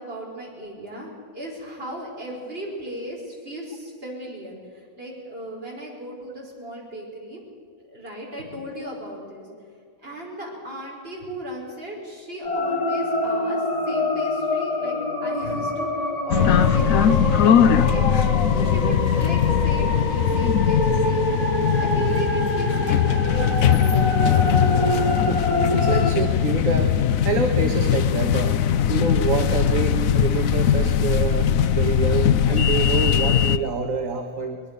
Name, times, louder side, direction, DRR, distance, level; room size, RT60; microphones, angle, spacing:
voice 1, 0.0-7.4 7.8-9.5 10.0-18.0 18.5-23.6, equal, 40° right, -2 dB, 5.9 m, -37 dB
sound 1, 12.4-26.1, left 1 dB, 25° left, 2.7 m, -26 dB
sound 2, 16.3-33.6, left 9 dB, 70° left, 1.1 m, -20 dB
voice 2, 25.3-28.6 28.9-34.6, right 4 dB, 65° right, 4 dB, 1.8 m, -27 dB
23.0 x 21.0 x 6.9 m, 2.2 s
omnidirectional pair, 1.5 m